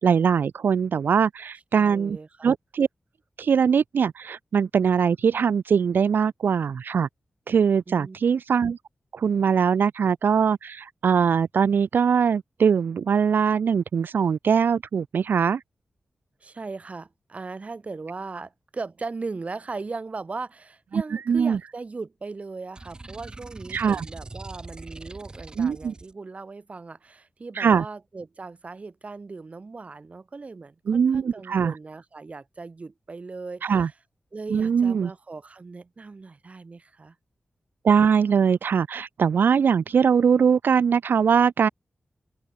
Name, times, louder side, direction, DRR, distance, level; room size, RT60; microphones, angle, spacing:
voice 1, 0.0-2.2 2.4-2.9 3.4-7.1 7.5-8.8 9.1-15.6 20.9-21.6 23.7-24.0 25.6-25.9 27.5-27.8 30.9-31.7 33.6-33.9 34.5-35.1 37.8-41.7, right 6 dB, 75° right, 0.4 m, -21 dB
voice 2, 1.8-2.5 7.9-8.2 16.4-33.9 34.3-37.2, right 3 dB, 40° right, 4.8 m, -38 dB
sound 1, 22.7-26.1, right 2 dB, 25° right, 1.0 m, -42 dB
wide cardioid pair, 140°, 3 cm